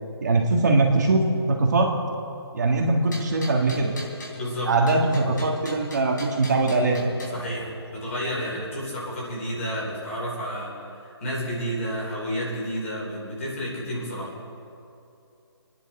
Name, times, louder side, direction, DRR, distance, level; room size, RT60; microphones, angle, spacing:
voice 1, 0.2-1.9 2.5-3.9 4.7-7.0, right 2 dB, 40° right, 1 dB, 1.8 m, -21 dB
sound 1, 3.1-4.4 4.9-7.4, left 1 dB, 45° left, 3.8 m, -41 dB
voice 2, 4.3-4.7 7.3-10.7 11.0-14.3, equal, 30° left, -4 dB, 3.7 m, -31 dB
28.0 x 10.0 x 4.3 m, 2.7 s
hypercardioid pair, 175°, 14 cm